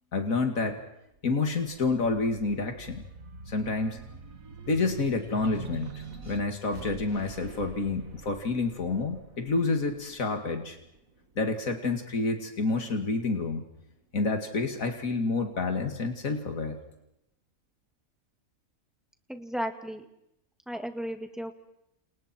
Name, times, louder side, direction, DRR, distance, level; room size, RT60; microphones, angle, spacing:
voice 1, 0.1-0.8 1.2-3.0 3.5-4.0 4.7-10.8 11.4-13.7 14.1-16.8, left 3 dB, 80° left, 5 dB, 2.7 m, -29 dB
sound 1, 1.1-11.9 12.5-13.6, right 4 dB, 80° right, 2.2 m, -46 dB
voice 2, 19.3-20.0 20.7-21.5, equal, ahead, 5 dB, 2.2 m, -34 dB
29.5 x 28.5 x 4.5 m, 0.82 s
omnidirectional pair, 1.4 m